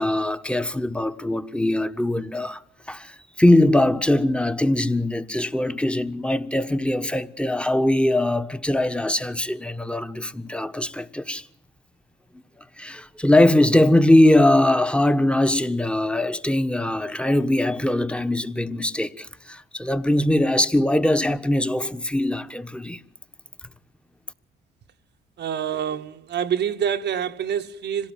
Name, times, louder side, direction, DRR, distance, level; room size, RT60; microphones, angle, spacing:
voice 1, 0.0-2.6 2.9-11.5 12.8-23.0, left 1 dB, 5° left, 1.3 m, -21 dB
voice 2, 25.4-28.1, right 8 dB, 60° right, 1.2 m, -26 dB
26.5 x 17.5 x 9.2 m
cardioid pair, 90°, 20 cm